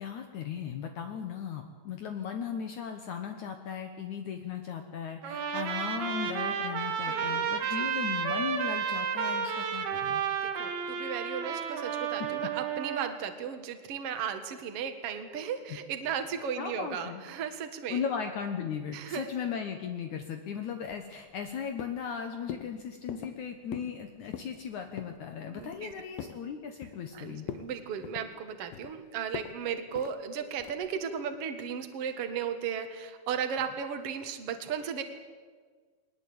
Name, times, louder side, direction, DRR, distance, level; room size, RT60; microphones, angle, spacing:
voice 1, 0.0-10.2 12.2-12.3 16.6-17.2 17.9-27.5, left 7 dB, 65° left, 6 dB, 2.4 m, -37 dB
Trumpet, 5.2-13.1, right 7 dB, 90° right, 3.9 m, -32 dB
voice 2, 7.1-7.9 10.4-18.0 18.9-19.3 25.3-25.9 27.1-35.0, right 7 dB, 50° right, 7 dB, 2.3 m, -36 dB
sound 1, 20.9-21.5 21.8-22.1 22.5-22.7 23.1-23.4 23.7-24.0 24.2-24.6 25.0-25.2 25.6-26.4 26.8-27.2 27.5-27.7 28.0-28.9 29.3-29.6 30.0-30.2 30.6-30.9, left 9 dB, 85° left, 3.0 m, -42 dB
21.5 x 19.5 x 8.7 m, 1.5 s
omnidirectional pair, 4.2 m